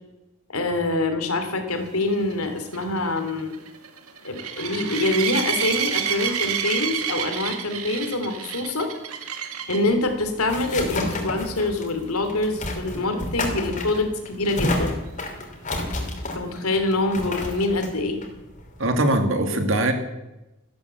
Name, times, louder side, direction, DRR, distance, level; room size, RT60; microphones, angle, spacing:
voice 1, 0.5-3.6 4.2-8.9 9.7-15.0 16.3-18.2, left 2 dB, 80° left, 7 dB, 2.9 m, -25 dB
sound 1, 2.0-9.9 10.5-10.8 11.1-11.2 11.6-11.7 15.3-15.4, right 8 dB, 80° right, 1.9 m, -29 dB
sound 2, 9.9-19.2, left 1 dB, 35° left, 3.1 m, -31 dB
voice 2, 18.8-19.9, right 1 dB, 60° right, 6 dB, 2.3 m, -21 dB
15.0 x 12.0 x 8.1 m, 0.97 s
head